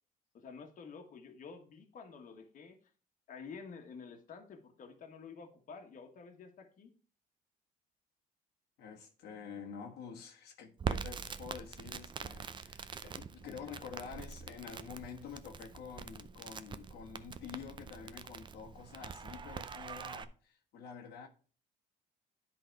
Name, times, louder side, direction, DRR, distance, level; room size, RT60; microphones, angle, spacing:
voice 1, 0.3-2.8 3.3-6.9, left 5 dB, 50° left, 1.4 m, -50 dB
voice 2, 8.8-21.3, left 6 dB, 75° left, 1.4 m, -48 dB
Crackle, 10.8-20.2, right 6 dB, 30° right, 0.5 m, -44 dB
10.5 x 4.0 x 4.6 m
cardioid pair, 110°, 17 cm